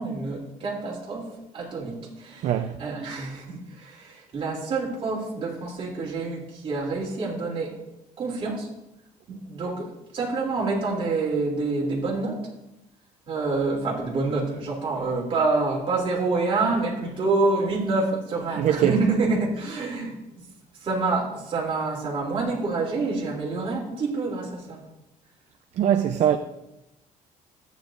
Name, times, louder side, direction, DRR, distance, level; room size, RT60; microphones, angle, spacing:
voice 1, 0.0-7.7 8.2-8.7 9.3-9.9 10.1-12.4 13.3-20.1 20.8-24.8 26.1-26.2, right 3 dB, 40° right, 3.0 m, -27 dB
voice 2, 2.4-2.7 18.6-18.9 25.8-26.4, right 10 dB, 55° right, 0.6 m, -21 dB
13.5 x 9.4 x 2.6 m
cardioid pair, 135°, 14 cm